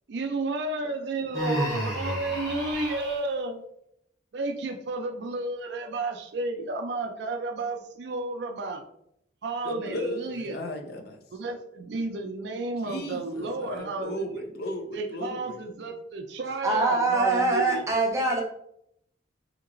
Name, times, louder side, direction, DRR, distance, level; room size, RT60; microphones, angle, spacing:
voice 1, 0.1-3.6 4.3-8.8 9.4-10.7 11.3-14.4 14.9-17.9, right 2 dB, 65° right, 0.5 m, -32 dB
Human voice, 1.3-3.2, equal, 15° left, 0.9 m, -31 dB
voice 2, 9.6-11.2 12.8-15.6, left 1 dB, 55° left, 0.5 m, -35 dB
voice 3, 16.6-18.4, right 2 dB, 15° right, 0.6 m, -23 dB
2.9 x 2.8 x 2.6 m
head